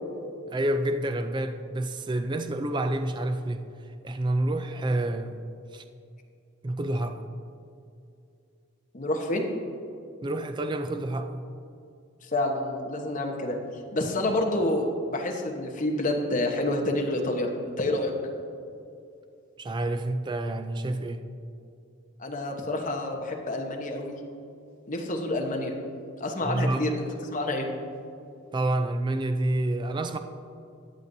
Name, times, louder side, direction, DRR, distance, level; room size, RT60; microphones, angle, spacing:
voice 1, 0.5-3.6 4.0-5.4 5.7-5.8 6.6-7.2 10.2-11.4 19.6-21.2 26.4-26.9 28.5-30.2, right 1 dB, 20° right, 0.4 m, -28 dB
voice 2, 8.9-9.4 12.3-13.6 13.9-17.5 17.8-18.1 22.2-24.2 24.9-25.7 26.2-27.7, left 1 dB, 40° left, 1.1 m, -28 dB
14.0 x 9.0 x 2.7 m
head